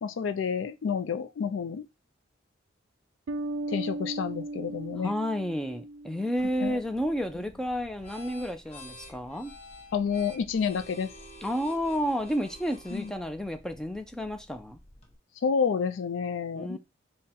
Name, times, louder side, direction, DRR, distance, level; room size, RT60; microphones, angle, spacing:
voice 1, 0.0-1.9 3.7-5.1 6.6-6.8 9.9-11.1 12.9-13.1 15.4-16.8, left 6 dB, 75° left, 0.4 m, -29 dB
Bass guitar, 3.3-6.8, right 1 dB, 80° right, 0.4 m, -37 dB
voice 2, 5.0-9.5 11.4-14.8 16.5-16.8, equal, 5° left, 0.3 m, -31 dB
sound 1, 6.3-15.2, left 1 dB, 35° left, 0.9 m, -50 dB
3.6 x 2.1 x 4.1 m
head